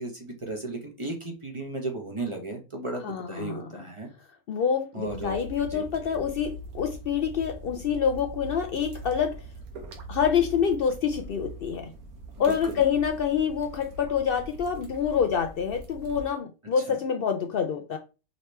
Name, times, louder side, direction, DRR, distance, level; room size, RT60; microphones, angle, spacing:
voice 1, 0.0-4.1 4.9-5.4 5.7-5.8 12.5-12.8 16.8-17.0, right 2 dB, 25° right, 0.8 m, -35 dB
voice 2, 3.0-3.7 4.5-9.3 10.1-11.9 12.4-18.0, left 7 dB, 80° left, 0.5 m, -27 dB
sound 1, 5.0-16.2, right 2 dB, 90° right, 1.5 m, -42 dB
5.1 x 3.0 x 3.2 m
omnidirectional pair, 1.5 m